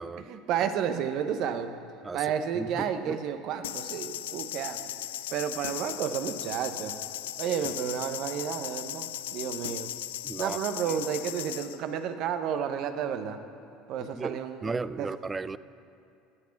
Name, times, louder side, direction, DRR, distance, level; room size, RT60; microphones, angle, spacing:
voice 1, 0.2-1.7 2.1-4.8 5.3-7.0 7.4-9.9 10.4-13.4 13.9-14.7 15.0-15.1, right 8 dB, 55° right, 9 dB, 0.9 m, -31 dB
voice 2, 2.6-3.2 10.2-10.6 10.9-11.0 14.1-15.6, right 4 dB, 20° right, 17 dB, 0.4 m, -35 dB
sound 1, 3.6-11.8, left 13 dB, 75° left, 0.4 m, -37 dB
17.5 x 8.4 x 5.9 m, 2.6 s
hypercardioid pair, 70°, 0 cm